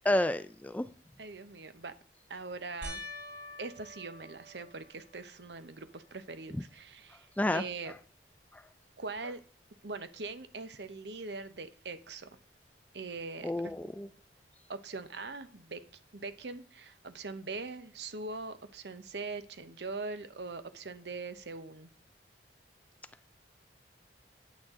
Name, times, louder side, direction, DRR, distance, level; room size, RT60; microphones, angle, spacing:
voice 1, 0.0-0.9 7.4-7.6 13.4-14.1, left 1 dB, 10° left, 13 dB, 0.3 m, -29 dB
voice 2, 1.2-1.9 2.3-3.0 3.6-7.3 7.5-7.9 9.0-9.4 9.8-12.4 12.9-13.7 14.7-15.8 16.1-21.9, right 3 dB, 70° right, 11 dB, 0.9 m, -42 dB
sound 1, 2.8-5.4 6.0-6.6 6.9-7.0 10.2-10.3, left 1 dB, 40° right, 2.1 m, -47 dB
9.4 x 9.0 x 3.7 m, 0.44 s
head